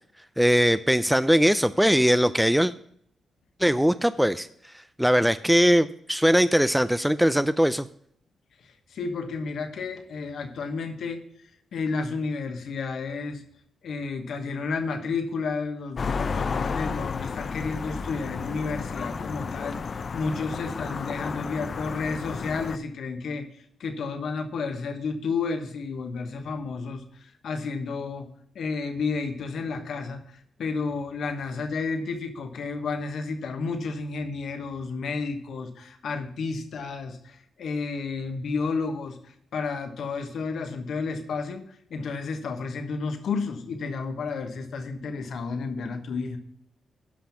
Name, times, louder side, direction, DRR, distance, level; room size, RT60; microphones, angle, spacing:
voice 1, 0.4-2.7 3.6-4.5 5.0-7.9, equal, 5° right, 13 dB, 0.4 m, -20 dB
voice 2, 8.6-11.2 11.7-13.4 13.8-28.3 28.5-46.4, left 4 dB, 70° left, 6 dB, 1.2 m, -31 dB
sound 1, 16.0-22.8, left 5 dB, 50° left, 0.5 m, -32 dB
11.5 x 5.8 x 5.7 m, 0.67 s
supercardioid pair, 50°, 0 cm